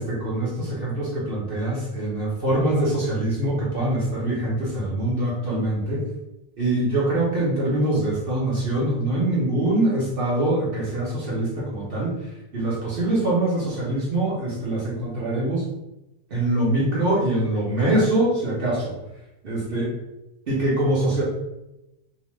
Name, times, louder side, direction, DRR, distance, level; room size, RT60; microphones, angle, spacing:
voice 1, 0.0-6.0 6.6-12.2 12.5-15.7 16.3-18.9 19.4-19.9 20.5-21.2, right 1 dB, 45° right, -6 dB, 0.8 m, -24 dB
2.8 x 2.1 x 3.1 m, 0.92 s
omnidirectional pair, 1.6 m